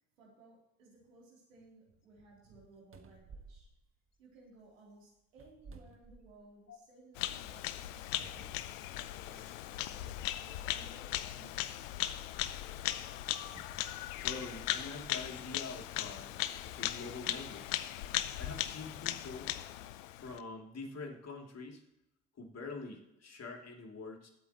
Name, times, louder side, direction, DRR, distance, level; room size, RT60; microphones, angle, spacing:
voice 1, 0.0-3.7 4.2-8.6 9.2-11.9, right 2 dB, 90° right, -3 dB, 3.4 m, -60 dB
sound 1, 2.5-2.6 2.9-4.6 5.3-6.7 7.2-7.3 8.2-9.3 10.3-10.4 13.5-15.2 15.9-16.0, right 4 dB, 35° right, 1.5 m, -56 dB
Bird vocalization bird call bird song, 7.2-20.4, left 14 dB, 80° left, 0.6 m, -38 dB
voice 2, 14.2-16.4 16.6-17.8 18.4-19.5 20.2-21.8 22.4-24.3, left 3 dB, 40° left, 1 dB, 2.9 m, -45 dB
20.5 x 8.3 x 3.0 m, 0.84 s
hypercardioid pair, 50°, 38 cm